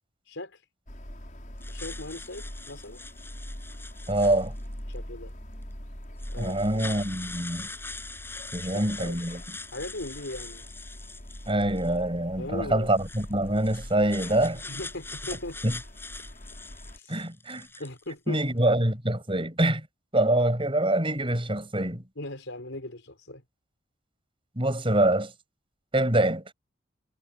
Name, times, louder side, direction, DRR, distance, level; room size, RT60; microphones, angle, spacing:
voice 1, 0.2-0.6 1.7-3.0 4.9-5.3 6.3-6.8 8.6-9.2 9.7-10.6 12.4-12.9 14.6-15.6 16.9-17.2 17.8-18.4 22.2-23.4, left 1 dB, 80° left, 5.0 m, -38 dB
sound 1, 0.9-17.0, equal, 40° left, 5.7 m, -43 dB
sound 2, 1.6-4.8 5.6-5.7 6.2-12.0 12.9-18.1, left 3 dB, 10° left, 6.7 m, -43 dB
voice 2, 4.1-4.5 6.4-7.7 8.5-9.4 11.5-14.6 15.6-15.7 17.1-17.7 18.3-19.9 20.1-22.0 24.5-25.3 25.9-26.4, right 1 dB, 25° right, 7.0 m, -25 dB
head